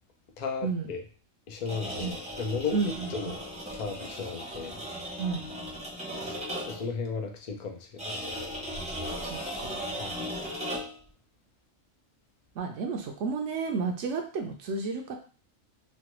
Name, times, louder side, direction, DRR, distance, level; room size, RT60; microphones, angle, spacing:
voice 1, 0.4-1.0 1.5-3.4 3.7-4.8 6.7-8.1 10.0-10.2, left 5 dB, 60° left, 3 dB, 0.4 m, -35 dB
sound 1, 1.6-6.9 8.0-11.1, equal, 10° right, 0.5 m, -37 dB
voice 2, 2.7-3.1 5.2-5.5 9.2-10.0 12.6-15.1, right 4 dB, 70° right, 3 dB, 0.9 m, -32 dB
3.1 x 2.2 x 2.9 m, 0.40 s
omnidirectional pair, 1.3 m